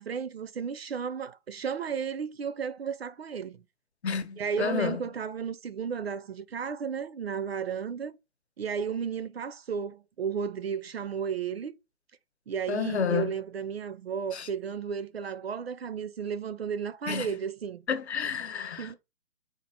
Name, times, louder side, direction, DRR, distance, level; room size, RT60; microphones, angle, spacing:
voice 1, 0.0-3.6 4.4-8.2 8.6-11.8 12.5-17.8 18.8-18.9, right 7 dB, 50° right, 0.5 m, -33 dB
voice 2, 4.0-5.0 12.7-13.3 14.3-14.5 17.1-17.3 17.9-18.9, left 6 dB, 55° left, 0.9 m, -30 dB
4.3 x 2.5 x 4.2 m
hypercardioid pair, 155°, 39 cm